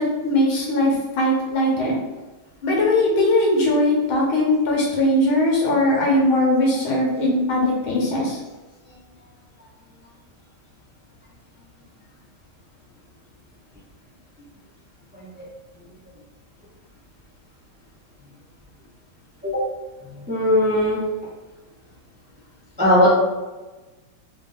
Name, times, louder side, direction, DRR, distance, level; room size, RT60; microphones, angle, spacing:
voice 1, 0.0-2.0 2.6-8.4, left 1 dB, 80° left, -3 dB, 2.0 m, -20 dB
voice 2, 15.1-15.5 19.4-19.6 20.3-21.0 22.8-23.1, left 1 dB, 5° right, -8 dB, 0.7 m, -19 dB
4.9 x 2.4 x 3.5 m, 1.2 s
omnidirectional pair, 2.2 m